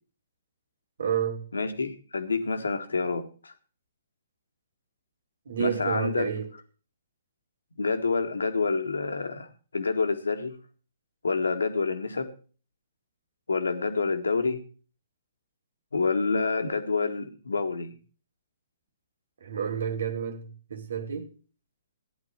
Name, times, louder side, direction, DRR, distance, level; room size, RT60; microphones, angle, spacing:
voice 1, 1.0-1.4 5.5-6.5 19.4-21.3, right 7 dB, 65° right, 2.4 m, -30 dB
voice 2, 1.5-3.5 5.6-6.3 7.8-10.6 11.2-12.3 13.5-14.6 15.9-17.9, left 4 dB, 75° left, 2.1 m, -28 dB
15.5 x 11.0 x 4.5 m
figure-of-eight pair, 125°, 0 cm